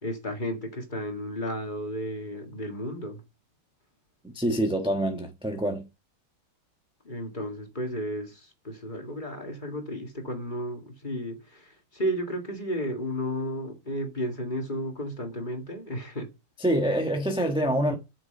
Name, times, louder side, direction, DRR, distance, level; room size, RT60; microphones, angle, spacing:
voice 1, 0.0-3.2 7.0-16.3, equal, 25° left, 2.1 m, -33 dB
voice 2, 4.3-5.9 16.6-18.0, right 1 dB, 5° right, 1.0 m, -26 dB
8.4 x 6.7 x 6.6 m
omnidirectional pair, 1.9 m